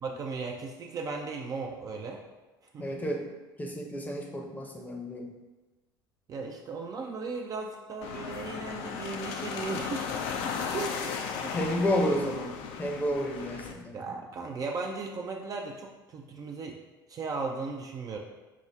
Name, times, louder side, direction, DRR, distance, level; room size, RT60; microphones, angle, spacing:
voice 1, 0.0-2.2 2.7-2.9 6.3-10.3 10.7-11.6 13.9-16.8 17.1-18.2, right 4 dB, 30° right, 1 dB, 0.4 m, -36 dB
voice 2, 2.8-3.2 3.6-5.3 11.5-12.5 12.8-14.2, equal, 15° left, 1 dB, 0.7 m, -31 dB
sound 1, 8.0-13.7, left 6 dB, 55° left, 0.4 m, -35 dB
4.7 x 2.1 x 3.4 m, 1.2 s
figure-of-eight pair, 65°, 12 cm